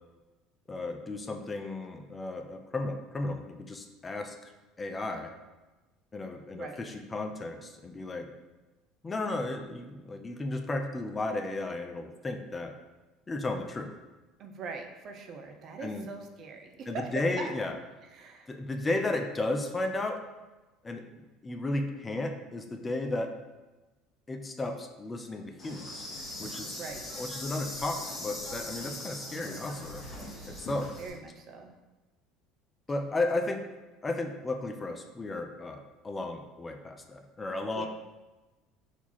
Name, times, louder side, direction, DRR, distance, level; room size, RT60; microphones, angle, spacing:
voice 1, 0.7-4.5 4.8-5.3 6.1-8.3 9.0-12.8 13.3-13.9 15.8-16.1 16.9-17.7 18.5-20.2 20.8-21.0 21.4-23.3 24.3-26.1 26.4-26.7 27.2-30.1 30.5-30.9 32.9-33.6 34.0-37.9, left 2 dB, 25° left, 6 dB, 0.5 m, -34 dB
voice 2, 6.5-6.8 14.4-17.5 18.1-18.5 26.6-27.2 29.2-30.7 31.0-31.7 33.0-33.2 37.7-37.9, right 4 dB, 50° right, 4 dB, 0.6 m, -42 dB
Insect, 25.6-31.1, left 1 dB, 40° left, 1.5 m, -40 dB
4.4 x 2.7 x 4.2 m, 1.1 s
hypercardioid pair, 70°, 0 cm